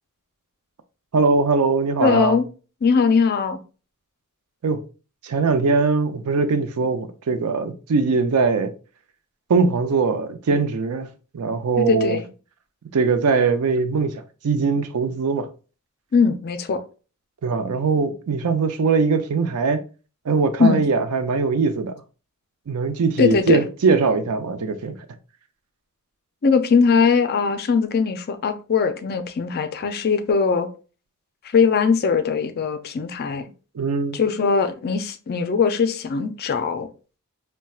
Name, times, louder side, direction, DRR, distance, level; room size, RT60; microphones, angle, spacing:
voice 1, 1.1-2.4 4.6-4.8 5.2-8.7 9.5-11.1 11.3-12.2 12.9-15.5 17.4-19.8 20.3-22.0 22.7-25.0 33.7-34.2, right 4 dB, 75° right, 0.4 m, -21 dB
voice 2, 2.0-2.4 2.8-3.6 11.8-12.2 16.1-16.8 20.6-20.8 23.2-23.6 26.4-30.7 31.5-33.5 34.1-36.9, left 5 dB, 45° left, 0.4 m, -20 dB
4.2 x 2.2 x 2.3 m
head